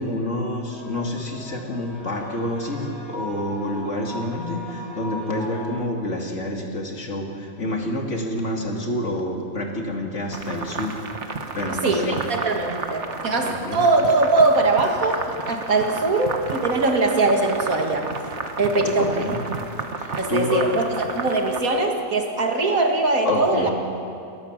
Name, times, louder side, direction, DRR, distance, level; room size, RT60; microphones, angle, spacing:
voice 1, 0.0-11.0 11.5-12.2 13.4-13.9 19.0-19.5 20.0-20.6 23.2-23.7, left 1 dB, 60° left, 1 dB, 2.8 m, -28 dB
sound 1, 0.7-5.7, left 1 dB, 20° right, 4.9 m, -38 dB
sound 2, 10.3-21.6, right 4 dB, 55° right, 1.6 m, -32 dB
voice 2, 11.7-18.1 18.6-19.4 20.2-23.7, right 2 dB, 90° right, 2 dB, 2.6 m, -21 dB
28.5 x 14.0 x 7.4 m, 2.5 s
omnidirectional pair, 1.4 m